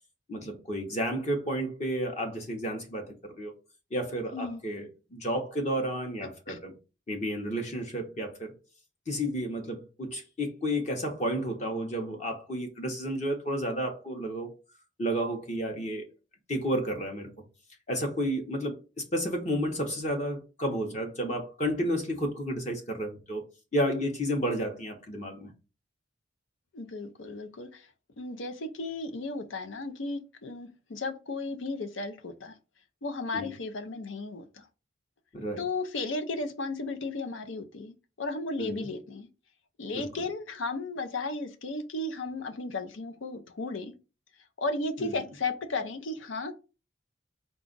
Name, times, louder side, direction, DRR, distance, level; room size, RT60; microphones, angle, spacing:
voice 1, 0.3-3.5 3.9-6.7 7.1-8.5 9.1-14.5 15.0-16.0 16.5-17.3 17.9-18.8 19.1-23.4 23.7-25.5 33.3-33.5 35.3-35.6 38.6-38.9 39.9-40.1 45.0-45.2, equal, 35° left, 0.8 m, -31 dB
voice 2, 26.7-27.9 28.2-32.5 33.0-34.7 35.6-39.3 39.8-43.9 44.6-46.5, left 3 dB, 85° left, 0.6 m, -34 dB
4.9 x 2.3 x 3.8 m
head